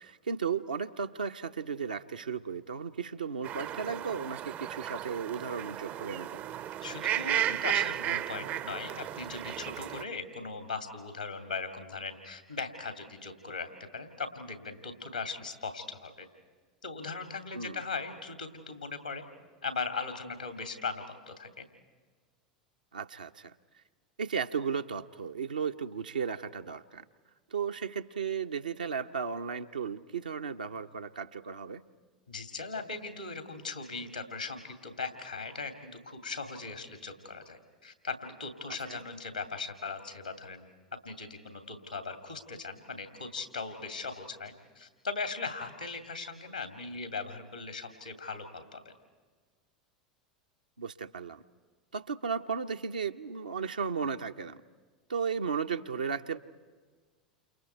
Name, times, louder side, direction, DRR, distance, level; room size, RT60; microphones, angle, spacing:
voice 1, 0.0-6.4 17.5-17.8 22.9-23.5 24.2-27.0 27.5-31.8 38.7-39.0 50.8-51.4 51.9-54.6 55.1-56.4, right 6 dB, 80° right, 6 dB, 0.8 m, -35 dB
sound 1, 3.4-10.0, right 11 dB, 40° right, 0.6 m, -34 dB
voice 2, 6.8-16.3 16.8-19.2 19.6-21.6 32.3-40.7 41.0-48.9, left 4 dB, 90° left, 7 dB, 2.6 m, -39 dB
29.5 x 28.0 x 4.6 m, 1.5 s
figure-of-eight pair, 80°, 4 cm